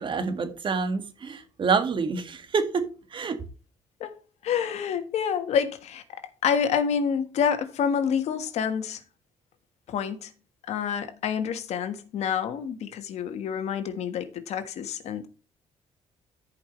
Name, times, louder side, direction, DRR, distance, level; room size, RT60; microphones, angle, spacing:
voice 1, 0.0-3.4, right 5 dB, 45° right, 1.9 m, -27 dB
voice 2, 4.4-9.0 9.9-10.3 10.7-15.3, left 7 dB, 75° left, 1.5 m, -28 dB
14.0 x 5.4 x 3.2 m
cardioid pair, 100°, 11 cm